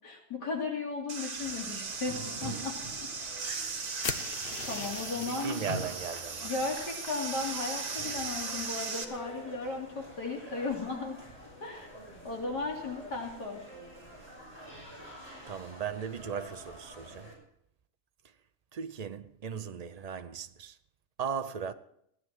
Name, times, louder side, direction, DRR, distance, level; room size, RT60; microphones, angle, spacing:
voice 1, 0.0-3.1 3.4-3.5 4.7-5.6 6.4-11.2 11.6-11.9 12.2-13.6, left 3 dB, 85° left, 3.9 m, -36 dB
sound 1, 1.1-9.0, right 4 dB, 65° right, 2.3 m, -38 dB
sound 2, 1.4-17.3, right 1 dB, 15° right, 6.6 m, -46 dB
sound 3, 4.0-6.2, left 6 dB, 45° left, 0.9 m, -39 dB
voice 2, 5.2-6.5 15.5-17.3 18.7-20.8 21.2-21.7, right 7 dB, 90° right, 0.3 m, -37 dB
16.0 x 10.5 x 7.4 m
omnidirectional pair, 1.7 m